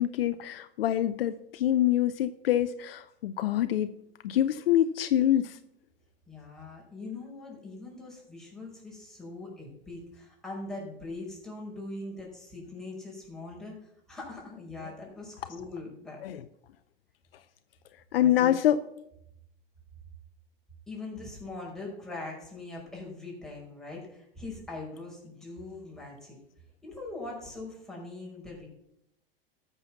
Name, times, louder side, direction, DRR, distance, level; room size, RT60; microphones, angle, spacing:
voice 1, 0.0-3.9 4.2-5.6 16.2-16.4 18.1-18.9, left 11 dB, 75° left, 12 dB, 0.6 m, -25 dB
voice 2, 6.3-16.2 20.9-26.4 26.8-28.7, left 2 dB, ahead, -5 dB, 5.2 m, -41 dB
13.0 x 6.9 x 5.8 m, 0.79 s
hypercardioid pair, 95°, 30 cm